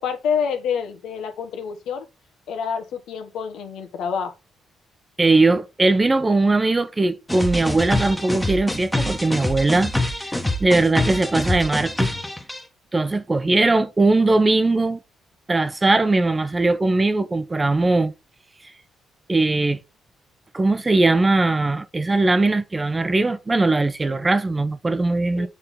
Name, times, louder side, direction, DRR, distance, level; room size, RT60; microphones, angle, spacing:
voice 1, 0.0-2.0 2.5-4.3 25.3-25.5, left 7 dB, 80° left, 1.3 m, -27 dB
voice 2, 5.2-10.3 10.6-12.1 12.9-15.0 15.5-18.1 19.3-19.8 20.5-25.5, right 2 dB, 20° right, 0.7 m, -20 dB
sound 1, 7.3-12.6, left 1 dB, 5° left, 1.3 m, -25 dB
6.8 x 3.7 x 5.5 m
cardioid pair, 90°, 0 cm